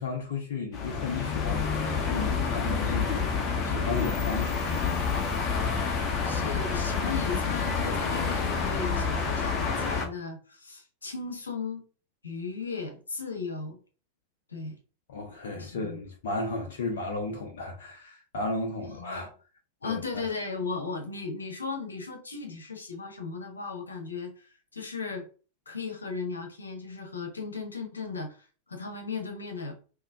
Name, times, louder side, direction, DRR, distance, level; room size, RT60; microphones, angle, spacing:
voice 1, 0.0-1.7 2.0-3.2 3.6-5.0 15.1-19.3 19.8-20.0, left 3 dB, 55° left, 0.9 m, -34 dB
sound 1, 0.7-10.1, left 5 dB, 30° left, 1.0 m, -28 dB
voice 2, 6.0-11.8 12.2-13.8 14.5-14.7 15.5-16.0 18.8-19.3 19.8-25.3 25.7-29.8, left 4 dB, 75° left, 1.1 m, -36 dB
5.4 x 3.0 x 2.5 m
figure-of-eight pair, 90°, 0 cm